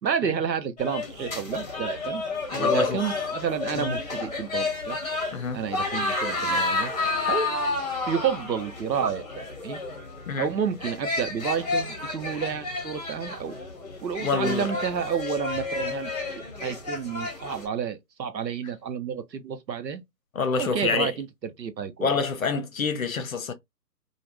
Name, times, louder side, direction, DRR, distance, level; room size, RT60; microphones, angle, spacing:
voice 1, 0.0-2.2 2.6-5.0 5.5-6.9 7.3-7.5 8.1-9.8 10.4-13.5 14.0-16.1 16.6-20.0 20.6-22.1, right 7 dB, 85° right, 0.8 m, -30 dB
sound 1, 0.8-17.6, left 3 dB, 25° left, 1.0 m, -31 dB
voice 2, 2.5-3.0 3.7-3.9 5.3-5.6 10.3-10.5 14.2-14.7 20.3-21.1 22.0-23.5, left 4 dB, 55° left, 0.7 m, -27 dB
2.4 x 2.1 x 3.2 m
figure-of-eight pair, 150°, 49 cm